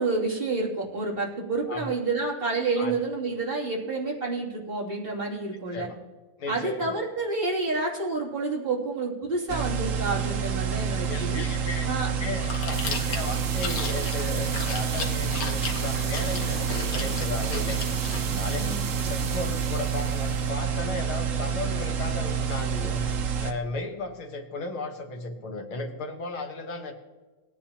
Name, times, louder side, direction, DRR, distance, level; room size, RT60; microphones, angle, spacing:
voice 1, 0.0-5.9 6.5-11.4 11.9-12.1 18.5-19.2, right 3 dB, 25° right, -5 dB, 2.9 m, -29 dB
voice 2, 6.4-7.0 10.8-17.8 18.4-23.0 23.4-26.9, left 3 dB, 70° left, 3 dB, 2.3 m, -35 dB
sound 1, 9.5-23.5, right 7 dB, 55° right, 0.9 m, -28 dB
Chewing mastication, 12.4-18.2, left 5 dB, 45° left, 1.5 m, -36 dB
sound 2, 12.7-20.5, right 6 dB, 90° right, 2.4 m, -36 dB
18.0 x 10.0 x 2.9 m, 1.2 s
omnidirectional pair, 2.4 m